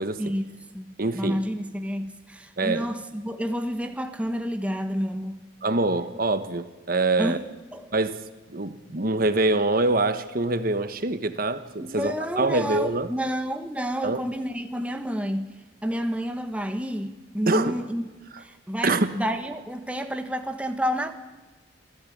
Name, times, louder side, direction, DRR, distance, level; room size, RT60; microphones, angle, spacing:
voice 1, 0.2-5.4 7.2-7.4 7.7-7.9 11.8-15.5 15.8-18.1 18.4-21.2, equal, 5° right, 1.3 m, -30 dB
voice 2, 1.0-1.4 2.6-2.9 5.6-7.4 7.9-8.2 8.5-13.1 14.0-14.2 17.5-17.8 18.8-19.1, right 2 dB, 50° right, 1.2 m, -25 dB
27.0 x 15.5 x 8.7 m
head